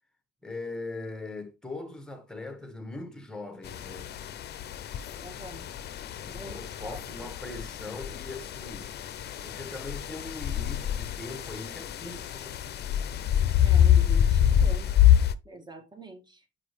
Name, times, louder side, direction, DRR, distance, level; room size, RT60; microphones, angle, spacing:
voice 1, 0.4-4.1 6.2-8.9 9.4-12.6, left 2 dB, 5° left, 1.2 m, -40 dB
sound 1, 3.7-15.3, left 10 dB, 55° left, 0.5 m, -26 dB
voice 2, 5.2-5.7 6.3-7.0 13.6-14.9 15.4-16.4, right 2 dB, 20° right, 1.4 m, -44 dB
6.1 x 4.9 x 3.1 m
cardioid pair, 90°, 20 cm